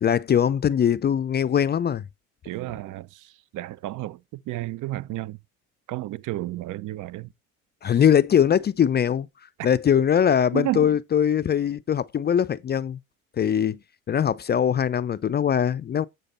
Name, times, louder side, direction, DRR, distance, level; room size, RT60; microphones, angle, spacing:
voice 1, 0.0-2.0 7.8-9.3 9.6-13.0 13.4-13.8 14.1-16.0, left 8 dB, 25° left, 0.5 m, -21 dB
voice 2, 2.4-5.4 5.9-7.3 7.8-8.0 10.5-11.0, right 15 dB, 50° right, 0.7 m, -32 dB
8.0 x 6.6 x 4.3 m
hypercardioid pair, 70°, 39 cm